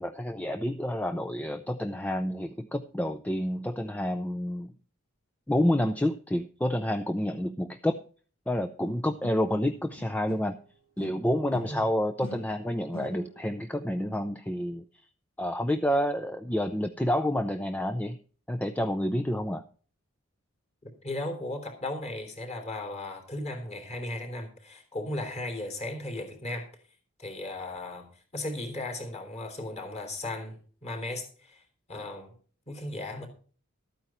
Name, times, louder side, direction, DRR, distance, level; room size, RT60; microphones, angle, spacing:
voice 1, 0.0-4.7 5.5-8.0 8.5-10.6 11.0-15.1 15.4-18.2 18.5-19.6, left 1 dB, 5° left, 7 dB, 0.5 m, -29 dB
sound 1, 8.9-10.6 11.0-13.6, left 1 dB, 65° left, 3.0 m, -46 dB
voice 2, 21.0-26.7 27.2-31.6 31.9-32.3 32.7-33.3, left 1 dB, 30° left, 5 dB, 3.3 m, -36 dB
13.0 x 9.1 x 4.4 m, 0.41 s
head